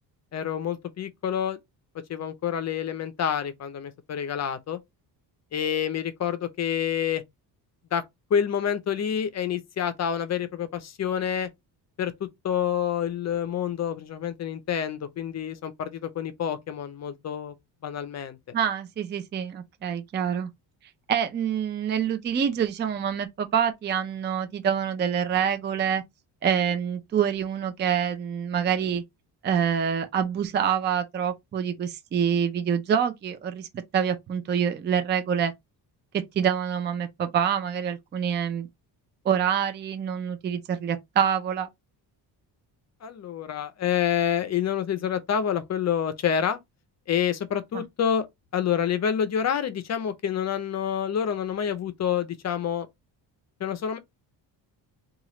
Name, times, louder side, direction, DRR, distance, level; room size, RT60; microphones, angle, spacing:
voice 1, 0.3-1.6 2.1-4.8 5.5-7.2 7.9-8.0 8.3-11.5 12.0-17.6 17.8-18.4 43.0-46.6 47.1-48.3 48.5-52.9 53.6-54.0, left 8 dB, 40° left, 0.5 m, -28 dB
voice 2, 18.5-20.5 21.1-26.0 26.4-29.0 29.4-33.7 33.9-35.5 36.3-38.7 39.2-41.7, right 8 dB, 25° right, 0.4 m, -26 dB
3.0 x 2.4 x 2.9 m
cardioid pair, 110°, 41 cm